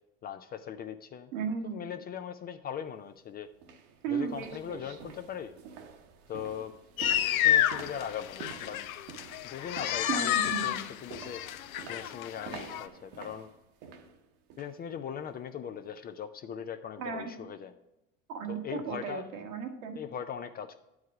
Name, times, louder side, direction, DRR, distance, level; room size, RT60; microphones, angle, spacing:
voice 1, 0.2-1.3 1.7-3.5 4.1-5.5 6.3-8.9 9.4-10.3 10.6-11.4 11.9-13.5 14.6-17.7 18.5-19.2 20.0-20.7, left 8 dB, 25° left, 9 dB, 0.3 m, -40 dB
voice 2, 1.3-1.9 4.0-4.8 10.1-10.8 17.0-17.3 18.3-20.0, right 6 dB, 75° right, 4 dB, 1.4 m, -35 dB
sound 1, 2.9-3.0 3.5-14.8 15.2-15.4 15.9-16.0, right 5 dB, 60° right, 1.1 m, -49 dB
sound 2, 7.0-12.9, left 11 dB, 85° left, 0.6 m, -30 dB
9.9 x 4.8 x 4.7 m, 0.91 s
hypercardioid pair, 85°, 41 cm